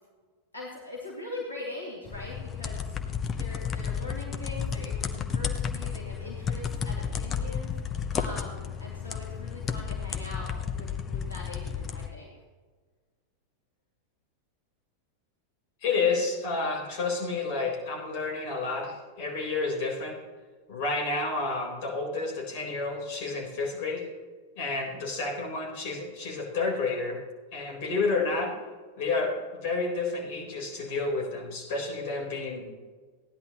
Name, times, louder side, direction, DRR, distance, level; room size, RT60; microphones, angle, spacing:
voice 1, 0.5-2.9 3.4-10.5 10.7-12.3, left 2 dB, 75° left, -4 dB, 2.5 m, -41 dB
sound 1, 2.1-12.1, left 7 dB, 25° left, 0.9 m, -32 dB
voice 2, 15.8-20.2 20.7-24.1 24.6-27.2 27.5-28.6 29.0-32.6, left 3 dB, 50° left, 0 dB, 4.3 m, -30 dB
16.5 x 11.0 x 3.1 m, 1.4 s
figure-of-eight pair, 90°, 0 cm